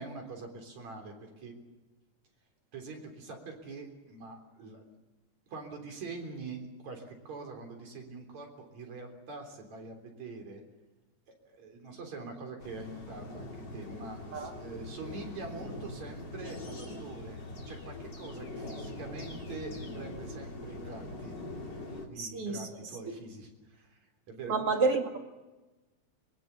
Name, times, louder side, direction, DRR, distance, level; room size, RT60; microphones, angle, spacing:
voice 1, 0.0-1.5 2.7-4.9 5.5-10.6 11.3-21.3 22.0-24.0 24.3-24.7, right 3 dB, 70° right, 3 dB, 5.0 m, -44 dB
sound 1, 12.6-22.1, left 2 dB, 35° left, 3.6 m, -42 dB
voice 2, 22.2-22.9 24.5-25.2, right 4 dB, 50° right, 4 dB, 3.1 m, -30 dB
23.5 x 22.5 x 7.0 m, 1.1 s
omnidirectional pair, 3.3 m